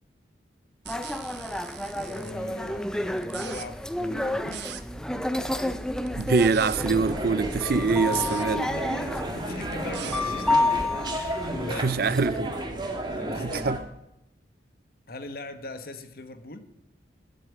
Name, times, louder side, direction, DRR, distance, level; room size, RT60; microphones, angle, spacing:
sound 1, 0.8-2.3 3.2-3.7 4.5-4.8 6.0-6.8 8.0-8.5 9.5-10.2, right 11 dB, 70° right, 0.8 m, -41 dB
sound 2, 0.9-12.4, left 2 dB, 5° left, 0.5 m, -30 dB
voice 1, 2.0-2.9 3.2-4.7 8.1-8.4 8.7-12.0 13.2-13.7 15.1-16.6, left 2 dB, 55° left, 1.2 m, -40 dB
voice 2, 6.2-8.7 11.8-12.6 13.4-13.8, right 4 dB, 55° right, 0.5 m, -24 dB
sound 3, 6.7-13.8, right 1 dB, 25° right, 1.7 m, -33 dB
10.5 x 8.1 x 8.4 m
head